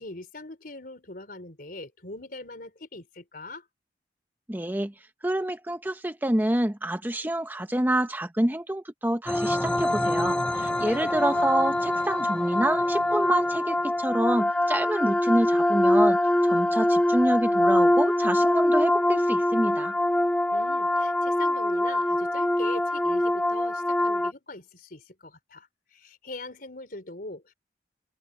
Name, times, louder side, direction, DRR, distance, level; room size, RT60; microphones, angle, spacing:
voice 1, 0.0-3.7 10.8-11.5 20.5-27.5, left 2 dB, 55° left, 4.3 m, -41 dB
voice 2, 4.5-4.9 5.2-16.2 16.4-19.9, right 1 dB, 10° right, 0.8 m, -27 dB
sound 1, 9.3-24.3, left 1 dB, 5° left, 0.4 m, -24 dB
open air
head